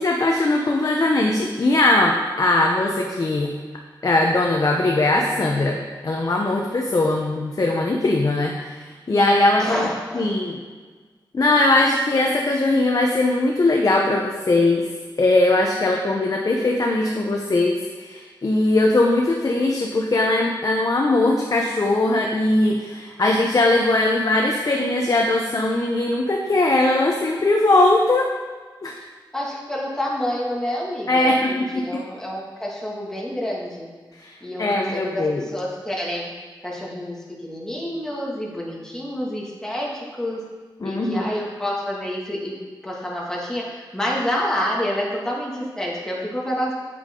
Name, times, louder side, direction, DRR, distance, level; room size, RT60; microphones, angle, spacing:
voice 1, 0.0-3.5 4.0-5.8 6.0-9.9 10.1-10.6 11.3-14.9 15.2-28.3 28.8-28.9 31.1-32.0 34.2-35.4 40.8-41.3, left 2 dB, 45° left, 0 dB, 0.9 m, -20 dB
voice 2, 9.6-10.4 29.3-33.9 34.4-36.3 36.6-40.4 40.8-42.5 42.8-46.7, equal, 5° left, -4 dB, 2.2 m, -28 dB
8.6 x 8.5 x 3.8 m, 1.4 s
wide cardioid pair, 85°, 8 cm